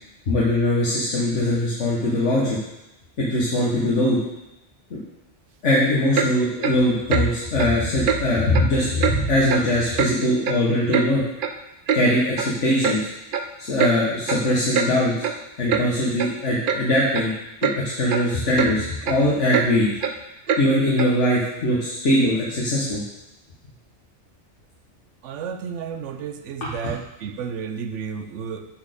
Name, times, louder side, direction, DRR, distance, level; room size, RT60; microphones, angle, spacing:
voice 1, 0.3-2.6 3.2-4.2 4.9-5.0 5.6-11.2 11.9-13.0 13.6-15.3 15.6-17.3 17.6-17.7 18.0-19.9 20.6-23.0 26.6-26.7, left 1 dB, 80° left, -5 dB, 1.7 m, -21 dB
Clock, 6.1-6.3 6.6-6.8 7.1-7.3 7.6-7.7 8.1-8.2 8.5-8.7 9.0-9.2 9.5-9.7 10.0-10.1 10.4-11.1 11.4-11.5 11.9-12.0 12.4-12.5 12.8-13.0 13.3-13.5 13.8-13.9 14.3-14.4 14.7-14.9 15.2-15.4 15.7-15.9 16.2-16.3 16.7-16.8 17.1-17.3 17.6-17.8 18.1-18.2 18.6-18.7 19.0-19.2 19.5-19.7 20.0-20.1 20.5-20.6 21.0-21.1, right 6 dB, 55° right, 0.7 m, -23 dB
voice 2, 25.2-28.7, right 6 dB, 85° right, 8 dB, 1.0 m, -32 dB
8.0 x 4.2 x 6.7 m, 0.95 s
omnidirectional pair, 1.2 m